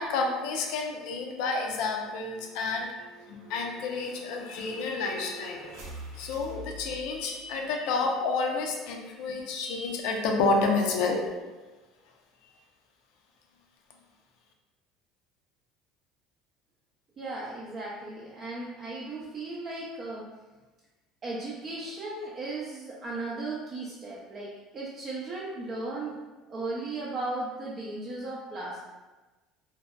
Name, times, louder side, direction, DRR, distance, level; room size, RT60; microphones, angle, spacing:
voice 1, 0.0-2.9 3.3-5.9 6.1-11.2, left 3 dB, 75° left, 2 dB, 0.4 m, -29 dB
sound 1, 0.9-7.6, right 1 dB, 80° right, 0.6 m, -47 dB
voice 2, 17.2-20.3 21.2-26.2 26.5-28.8, right 2 dB, 40° right, -5 dB, 0.4 m, -36 dB
2.6 x 2.1 x 2.3 m, 1.2 s
supercardioid pair, 110°, 0 cm